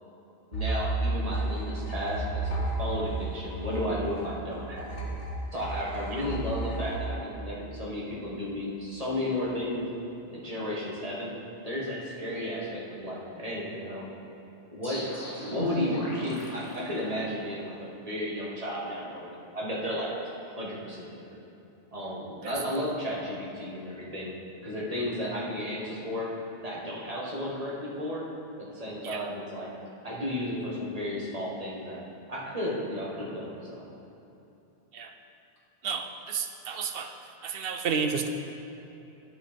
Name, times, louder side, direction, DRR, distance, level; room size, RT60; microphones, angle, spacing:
sound 1, 0.5-8.0, right 2 dB, 80° left, 1.5 m, -33 dB
voice 1, 0.5-5.1 5.5-9.9 10.3-11.3 11.6-14.1 14.7-15.1 15.5-21.2 21.9-24.3 24.6-26.3 26.6-28.2 28.6-29.7 30.0-32.0 32.3-33.9, left 1 dB, 35° right, -5 dB, 1.7 m, -33 dB
sound 2, 14.8-17.6, left 2 dB, 35° left, 1.5 m, -37 dB
voice 2, 35.8-37.1 37.4-38.3, right 6 dB, 65° right, 5 dB, 0.7 m, -31 dB
11.5 x 5.0 x 4.4 m, 3.0 s
omnidirectional pair, 1.2 m